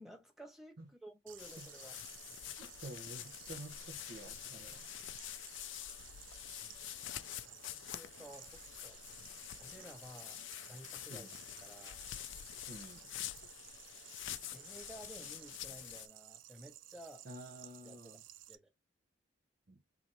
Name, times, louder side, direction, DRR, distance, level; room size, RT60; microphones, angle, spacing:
voice 1, 0.0-2.0 7.0-9.0 9.6-10.4 10.7-11.3 11.6-12.1 14.5-17.3 17.8-18.2 18.5-18.7, right 1 dB, ahead, 1.4 m, -54 dB
sound 1, 1.3-18.5, right 13 dB, 85° right, 0.5 m, -56 dB
sound 2, 1.4-16.1, left 12 dB, 80° left, 0.4 m, -47 dB
voice 2, 2.6-4.8 6.6-6.7 11.1-11.3 12.7-13.0 17.2-18.2 19.7-19.8, right 1 dB, 55° right, 0.9 m, -50 dB
3.9 x 2.9 x 3.0 m
head